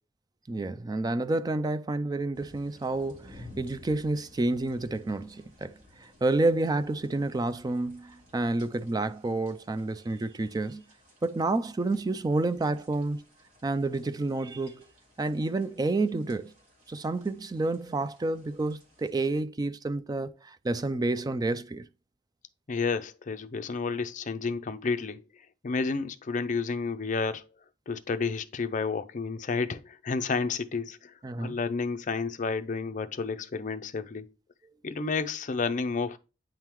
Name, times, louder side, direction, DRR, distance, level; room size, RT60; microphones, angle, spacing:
voice 1, 0.5-10.8 11.2-13.2 13.6-14.9 15.2-16.5 16.9-21.9 31.2-31.6, right 2 dB, 20° right, 0.3 m, -29 dB
sound 1, 2.3-19.1, left 1 dB, 45° right, 2.2 m, -56 dB
voice 2, 22.7-25.2 25.6-27.4 27.9-34.3 34.8-36.2, left 4 dB, 45° left, 0.5 m, -31 dB
8.8 x 3.7 x 3.0 m
head